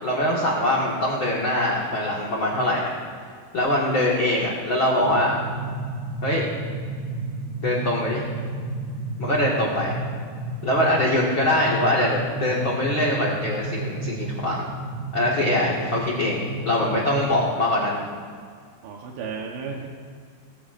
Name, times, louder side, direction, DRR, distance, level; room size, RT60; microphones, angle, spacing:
voice 1, 0.0-2.9 3.5-5.4 6.2-6.4 7.6-8.3 9.2-10.0 10.6-14.6 15.1-18.1, left 1 dB, 45° left, -5 dB, 1.7 m, -23 dB
sound 1, 5.0-17.3, right 2 dB, 35° right, 3.3 m, -32 dB
voice 2, 16.8-17.4 18.8-19.9, right 5 dB, 85° right, 0 dB, 3.4 m, -35 dB
20.0 x 16.0 x 2.6 m, 2.1 s
omnidirectional pair, 4.9 m